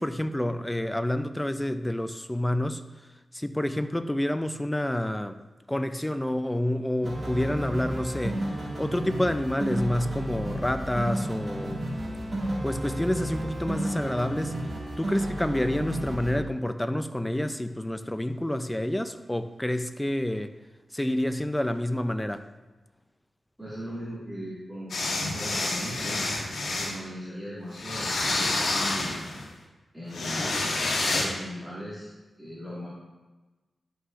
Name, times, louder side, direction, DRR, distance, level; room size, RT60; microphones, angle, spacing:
voice 1, 0.0-2.8 3.3-5.4 5.7-8.5 8.8-11.8 12.6-14.5 15.0-20.5 20.9-22.5, left 1 dB, 10° left, 0.4 m, -28 dB
sound 1, 7.0-16.4, right 1 dB, 50° right, 2.0 m, -32 dB
voice 2, 23.6-24.9 25.1-26.3 26.7-29.2 29.9-32.1 32.4-32.9, equal, 10° right, 1.9 m, -38 dB
sound 2, 24.9-27.0 27.7-29.5 30.1-31.3, left 2 dB, 85° left, 1.4 m, -28 dB
11.0 x 5.7 x 2.5 m
wide cardioid pair, 80°, 0 cm